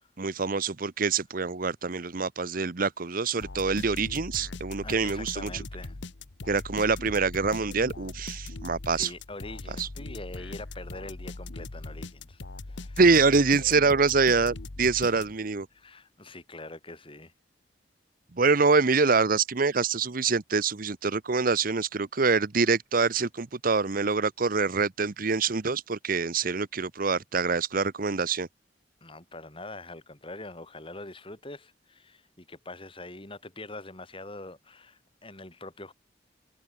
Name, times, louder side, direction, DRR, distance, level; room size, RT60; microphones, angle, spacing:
voice 1, 0.2-5.6 6.5-9.1 9.8-9.9 13.0-15.7 18.4-28.5, right 4 dB, 50° right, 0.9 m, -25 dB
sound 1, 3.4-15.6, left 2 dB, 85° left, 1.2 m, -40 dB
voice 2, 4.8-6.0 8.9-12.4 12.7-13.0 15.1-15.3 15.7-17.3 29.0-35.9, left 2 dB, 30° left, 5.9 m, -44 dB
head